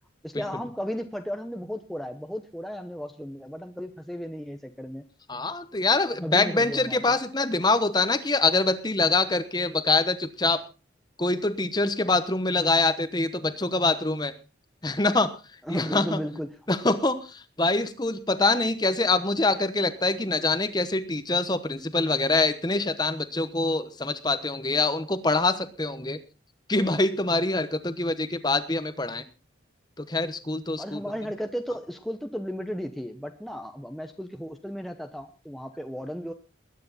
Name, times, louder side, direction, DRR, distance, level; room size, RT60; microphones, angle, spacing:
voice 1, 0.2-5.0 6.2-7.2 15.6-16.6 30.8-36.3, equal, ahead, 5 dB, 0.8 m, -35 dB
voice 2, 5.3-10.6 11.2-14.3 14.8-15.3 15.7-16.2 16.7-17.2 17.6-26.2 26.7-29.2 30.0-31.0, left 3 dB, 20° left, 12 dB, 1.0 m, -24 dB
21.0 x 9.6 x 4.1 m, 0.32 s
head